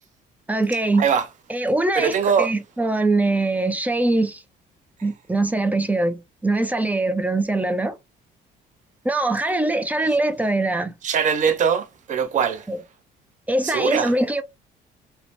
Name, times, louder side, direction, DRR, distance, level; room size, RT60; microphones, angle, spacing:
voice 1, 0.5-1.1 1.5-4.4 5.0-8.0 9.0-10.9 12.7-12.8 13.5-14.4, right 2 dB, 10° right, 0.4 m, -22 dB
voice 2, 1.9-2.5 11.0-12.7 13.6-14.1, right 7 dB, 50° right, 0.6 m, -21 dB
2.7 x 2.0 x 3.0 m
cardioid pair, 110°, 17 cm